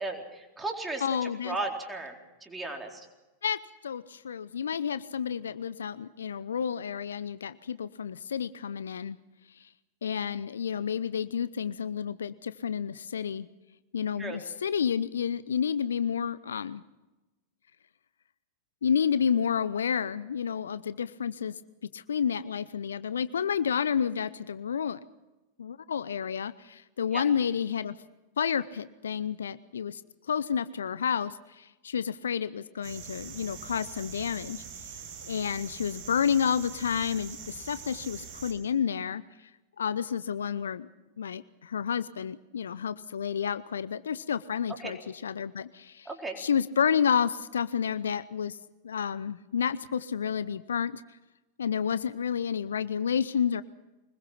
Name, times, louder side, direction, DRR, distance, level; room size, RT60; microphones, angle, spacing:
voice 1, 0.0-1.0 1.4-2.1 2.4-3.1 14.2-14.4 27.1-27.2 44.8-44.9 46.1-46.4, right 2 dB, 10° right, 2 dB, 4.2 m, -35 dB
voice 2, 1.0-1.6 3.4-9.2 9.6-9.7 10.0-13.5 13.9-16.8 18.8-21.5 21.9-25.0 25.6-27.9 28.4-30.0 30.3-34.6 35.2-39.2 39.8-40.9 41.2-46.1 46.4-48.6 48.8-51.0 51.6-53.6, left 7 dB, 70° left, 16 dB, 0.7 m, -30 dB
sound 1, 32.8-38.5, right 6 dB, 45° right, 6.4 m, -43 dB
24.5 x 21.0 x 5.9 m, 1.1 s
figure-of-eight pair, 90°, 0 cm